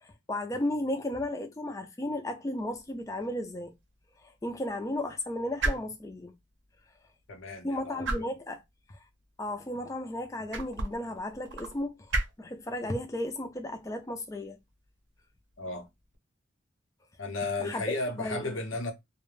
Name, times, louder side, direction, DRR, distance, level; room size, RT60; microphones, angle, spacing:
voice 1, 0.0-3.7 4.2-6.4 7.6-8.6 8.9-9.0 9.4-11.9 12.4-14.6 17.6-17.8 18.2-18.6, left 1 dB, 15° left, 0.3 m, -34 dB
sound 1, 2.6-16.2, right 2 dB, 70° right, 0.6 m, -39 dB
voice 2, 7.3-8.3 15.6-15.9 17.2-18.9, left 2 dB, 85° left, 0.7 m, -34 dB
2.4 x 2.1 x 3.2 m
head